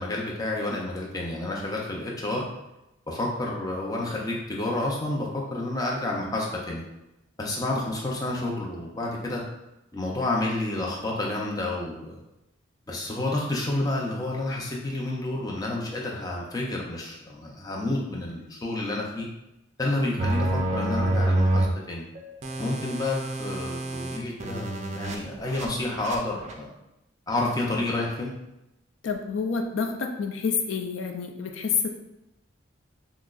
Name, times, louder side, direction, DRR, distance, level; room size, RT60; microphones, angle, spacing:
voice 1, 0.0-2.5 3.1-6.8 7.4-9.4 9.9-12.2 12.9-19.3 19.8-22.0 22.6-26.7 27.3-28.3, left 2 dB, 20° left, -2 dB, 0.5 m, -30 dB
sound 1, 20.2-21.7 22.2-25.2 25.4-25.7 25.9-26.2 26.4-26.5, right 1 dB, 35° right, 0.4 m, -27 dB
voice 2, 29.0-31.9, left 5 dB, 80° left, 4 dB, 0.4 m, -28 dB
6.0 x 2.0 x 2.4 m, 0.92 s
head